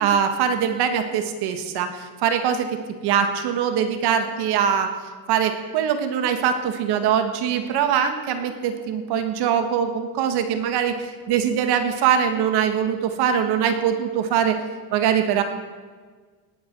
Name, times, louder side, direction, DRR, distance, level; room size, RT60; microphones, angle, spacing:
voice 1, 0.0-2.8 3.0-4.9 5.3-14.6 14.9-15.4, right 8 dB, 65° right, 7 dB, 1.7 m, -22 dB
18.0 x 10.5 x 6.1 m, 1.5 s
cardioid pair, 175°, 41 cm